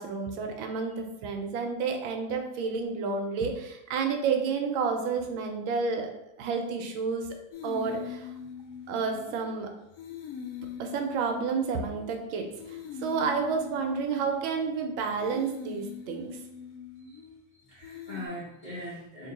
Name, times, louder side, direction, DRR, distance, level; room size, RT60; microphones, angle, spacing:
voice 1, 0.0-6.1 6.4-7.3 7.6-8.3 8.9-9.7 10.8-16.3, right 5 dB, 80° right, 4 dB, 1.3 m, -30 dB
sound 1, 7.5-9.6 9.9-12.2 12.6-14.8 15.2-17.4 17.8-18.3, left 8 dB, 85° left, 0.8 m, -42 dB
voice 2, 17.7-19.3, left 1 dB, 35° left, -10 dB, 0.8 m, -41 dB
3.1 x 2.9 x 3.9 m, 0.86 s
omnidirectional pair, 2.2 m